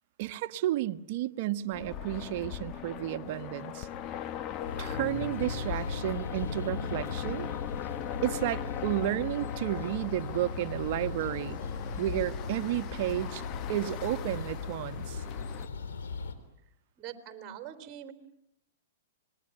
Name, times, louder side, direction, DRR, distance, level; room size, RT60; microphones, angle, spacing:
voice 1, 0.2-3.9 4.8-7.5 8.2-11.6 12.0-15.2, right 14 dB, 50° right, 11 dB, 1.2 m, -32 dB
sound 1, 1.7-15.7, left 10 dB, 35° left, 1.1 m, -40 dB
sound 2, 4.6-16.3, left 4 dB, 80° left, 3.8 m, -38 dB
voice 2, 17.0-18.1, right 10 dB, 30° right, 8 dB, 3.7 m, -44 dB
26.5 x 21.0 x 9.9 m, 0.74 s
hypercardioid pair, 130°, 0 cm